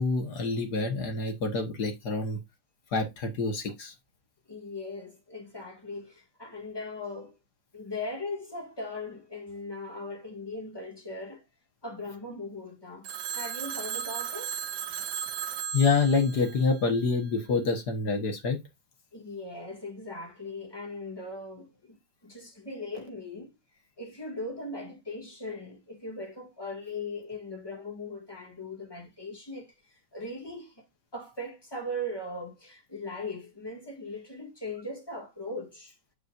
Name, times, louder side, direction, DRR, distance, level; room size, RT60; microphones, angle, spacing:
voice 1, 0.0-2.4 2.9-3.9 15.0-15.1 15.7-18.6, left 4 dB, 50° left, 1.9 m, -27 dB
voice 2, 4.5-7.4 7.7-11.4 11.8-13.1 13.3-14.5 19.1-23.5 24.0-29.7 30.1-30.8 31.1-35.9, left 2 dB, 10° left, 1.9 m, -39 dB
Telephone, 13.0-17.3, right 8 dB, 75° right, 0.8 m, -36 dB
7.2 x 7.1 x 2.6 m
omnidirectional pair, 2.4 m